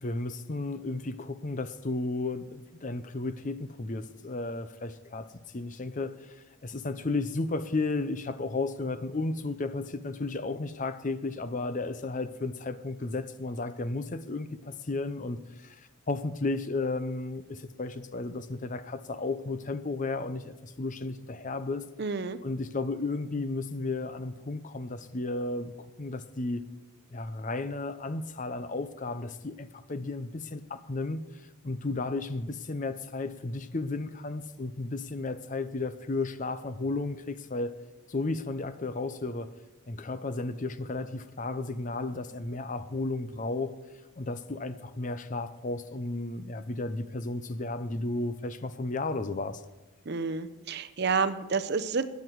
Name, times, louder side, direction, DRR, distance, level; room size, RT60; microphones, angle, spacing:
voice 1, 0.0-21.9 22.4-26.6 27.1-37.8 38.1-39.5 39.9-43.8 44.2-49.6, left 3 dB, 35° left, 0.6 m, -33 dB
voice 2, 22.0-22.4 50.1-52.0, right 4 dB, 50° right, 0.6 m, -29 dB
20.0 x 9.4 x 4.6 m
head